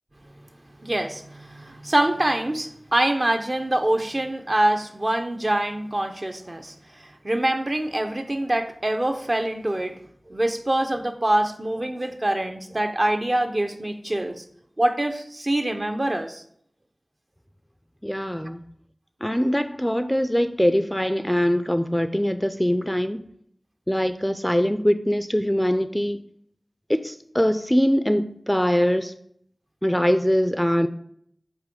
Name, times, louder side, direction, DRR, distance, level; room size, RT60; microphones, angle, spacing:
voice 1, 0.8-10.0 10.3-14.4 14.8-16.4, right 1 dB, 45° right, 6 dB, 0.7 m, -25 dB
voice 2, 18.0-18.6 19.2-23.2 23.9-26.2 26.9-29.1 29.8-30.9, equal, 5° left, 10 dB, 0.4 m, -22 dB
8.1 x 3.0 x 5.3 m, 0.67 s
wide cardioid pair, 45°, 0 cm